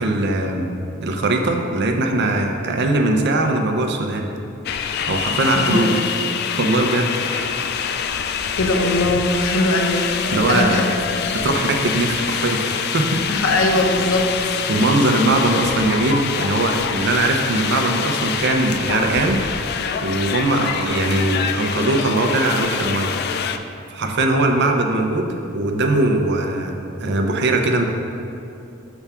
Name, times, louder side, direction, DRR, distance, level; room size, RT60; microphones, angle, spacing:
voice 1, 0.0-4.3 5.1-5.9 6.6-7.5 10.3-10.8 11.3-13.2 14.7-19.4 20.0-23.1 23.9-27.8, right 2 dB, 55° right, 3 dB, 0.6 m, -20 dB
sound 1, 4.7-23.6, left 7 dB, 55° left, 0.3 m, -25 dB
voice 2, 5.5-6.0 8.6-10.1 10.5-10.9 13.3-14.6, left 1 dB, 85° left, 2 dB, 0.8 m, -20 dB
7.0 x 3.5 x 5.7 m, 2.7 s
head